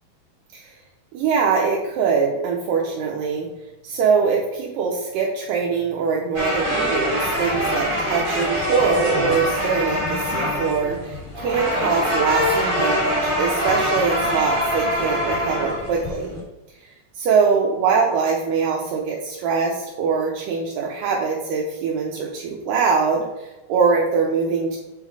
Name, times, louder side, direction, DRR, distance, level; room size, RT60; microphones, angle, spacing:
voice 1, 1.1-3.5 3.8-16.3 16.8-24.8, right 5 dB, 80° right, -2 dB, 2.1 m, -23 dB
sound 1, 6.3-16.4, equal, 15° right, 1.1 m, -24 dB
7.3 x 3.8 x 4.7 m, 1.0 s
omnidirectional pair, 4.6 m